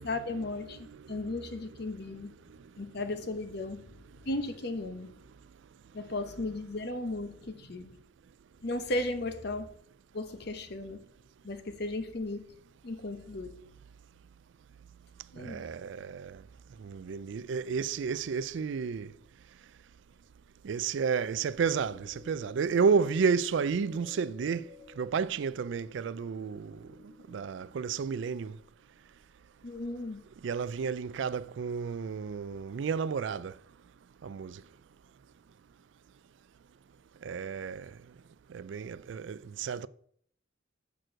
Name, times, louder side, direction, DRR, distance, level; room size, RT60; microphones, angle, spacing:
voice 1, 0.0-2.3 2.8-3.9 4.2-5.1 5.9-8.0 8.6-9.7 10.1-11.0 11.4-12.4 12.8-13.6 15.3-15.6 29.6-30.2, left 2 dB, 55° left, 0.9 m, -35 dB
voice 2, 15.4-16.4 16.8-19.1 20.6-24.6 25.0-26.8 27.3-28.5 30.4-33.5 34.2-34.6 37.2-37.9 38.5-39.9, right 5 dB, 65° right, 0.4 m, -31 dB
sound 1, 21.3-28.6, left 3 dB, 35° left, 1.6 m, -54 dB
6.6 x 6.1 x 6.3 m
head